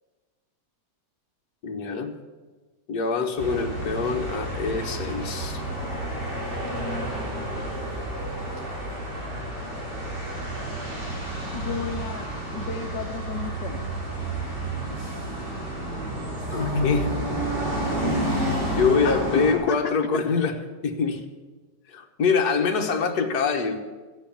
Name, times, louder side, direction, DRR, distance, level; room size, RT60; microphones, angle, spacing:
voice 1, 1.6-2.1 2.9-5.6 16.5-17.1 18.8-20.6 20.8-21.2 21.9-23.8, left 5 dB, 65° left, 4 dB, 1.8 m, -25 dB
sound 1, 3.4-19.5, right 1 dB, 75° right, 4.6 m, -30 dB
voice 2, 11.5-13.9 19.0-19.9, left 8 dB, 80° left, 3 dB, 1.4 m, -32 dB
14.5 x 9.9 x 7.2 m, 1.3 s
omnidirectional pair, 1.9 m